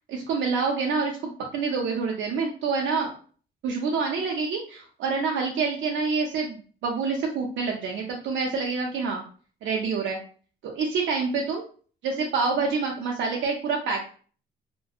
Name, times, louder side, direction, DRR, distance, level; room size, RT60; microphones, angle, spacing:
voice 1, 0.1-1.1 1.5-3.1 3.6-9.2 9.6-10.2 10.6-11.6 12.0-14.0, right 4 dB, 75° right, 0 dB, 0.5 m, -27 dB
2.7 x 2.1 x 2.3 m, 0.42 s
cardioid pair, 90°, 20 cm